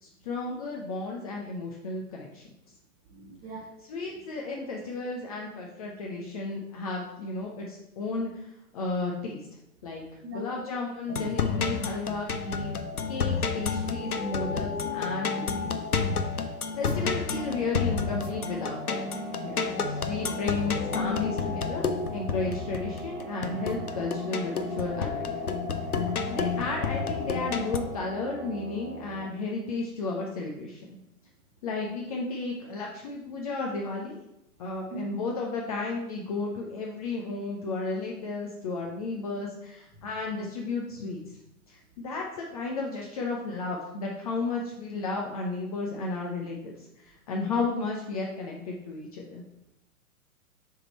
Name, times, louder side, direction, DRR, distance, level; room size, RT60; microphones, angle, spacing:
voice 1, 0.0-2.5 3.8-9.4 9.8-10.0 10.3-15.7 16.7-19.0 19.4-25.3 26.3-31.0 31.6-34.2 34.6-41.4 41.7-49.4, left 3 dB, 25° left, -1 dB, 0.6 m, -33 dB
voice 2, 3.1-3.7 10.2-10.5 16.5-17.1 34.9-35.1 47.5-47.6, right 2 dB, 20° right, 0 dB, 1.1 m, -41 dB
sound 1, 11.1-27.8, left 5 dB, 80° left, 0.7 m, -30 dB
sound 2, 17.3-29.2, right 3 dB, 50° right, 1.1 m, -41 dB
6.8 x 3.7 x 4.3 m, 0.85 s
figure-of-eight pair, 110°, 44 cm